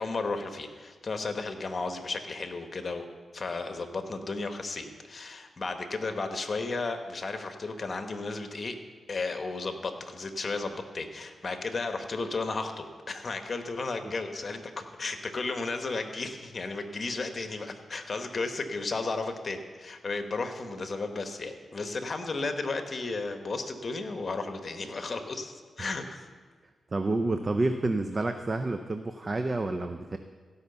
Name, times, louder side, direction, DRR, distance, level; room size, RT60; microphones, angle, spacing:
voice 1, 0.0-3.1 3.3-8.8 9.1-26.3, left 3 dB, 45° left, 7 dB, 1.2 m, -34 dB
voice 2, 26.9-30.2, right 2 dB, 35° right, 7 dB, 0.6 m, -29 dB
16.0 x 5.7 x 6.9 m, 1.5 s
cardioid pair, 65°, 0 cm